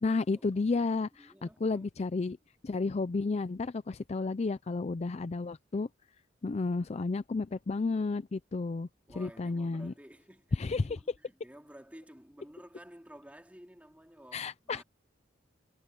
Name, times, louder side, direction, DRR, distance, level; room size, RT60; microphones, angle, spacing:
voice 1, 0.0-2.4 2.6-5.9 6.4-8.9 9.2-9.9 10.6-11.0 14.3-14.8, left 3 dB, 35° left, 0.4 m, -32 dB
voice 2, 1.1-1.9 9.1-14.8, equal, 10° right, 3.1 m, -53 dB
head